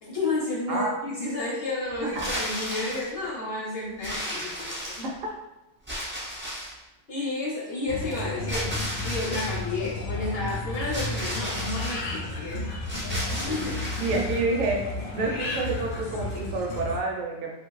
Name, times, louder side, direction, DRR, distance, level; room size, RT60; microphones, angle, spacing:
voice 1, 0.0-5.1 7.1-8.7 9.0-12.7 13.3-13.9, left 2 dB, 50° left, -5 dB, 0.8 m, -31 dB
sound 1, 2.1-3.1 4.0-5.3 5.9-6.8 8.5-9.6 10.9-12.0 12.8-14.4, equal, 15° right, 0.5 m, -34 dB
sound 2, 7.9-17.0, left 2 dB, 85° left, 0.4 m, -33 dB
voice 2, 14.0-14.8 15.1-17.5, right 3 dB, 70° right, 0 dB, 0.9 m, -28 dB
3.0 x 2.5 x 3.0 m, 0.96 s
omnidirectional pair, 1.5 m